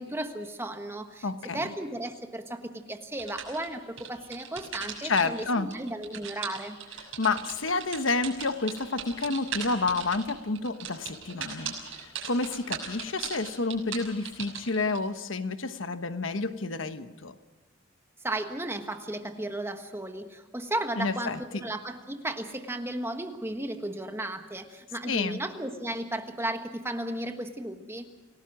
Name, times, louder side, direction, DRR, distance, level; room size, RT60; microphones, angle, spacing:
voice 1, 0.0-1.3 1.5-6.8 18.2-28.1, right 1 dB, 10° right, 6 dB, 1.5 m, -34 dB
voice 2, 1.2-1.7 5.0-5.7 7.2-11.7 12.0-17.3 21.0-21.6 25.1-25.4, left 3 dB, 75° left, 10 dB, 1.2 m, -29 dB
sound 1, 3.2-5.4 5.7-15.0, right 8 dB, 85° right, 6.2 m, -37 dB
28.5 x 18.0 x 6.1 m, 1.2 s
head